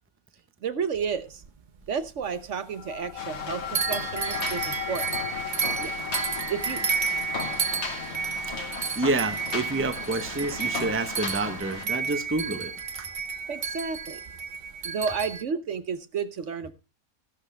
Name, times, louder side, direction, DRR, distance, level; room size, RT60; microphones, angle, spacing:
voice 1, 0.6-1.4 1.9-5.1 5.8-5.9 6.5-6.8 7.2-7.3 13.5-14.2 14.8-16.7, right 6 dB, 60° right, 1.1 m, -31 dB
sound 1, 0.9-2.5 2.8-3.5 3.7-15.4, right 6 dB, 45° right, 0.7 m, -32 dB
sound 2, 2.7-13.5, left 11 dB, 75° left, 1.3 m, -40 dB
sound 3, 3.2-11.9, left 4 dB, 50° left, 1.6 m, -37 dB
voice 2, 9.0-13.1, right 3 dB, 10° right, 0.7 m, -29 dB
14.0 x 11.5 x 3.3 m
omnidirectional pair, 1.5 m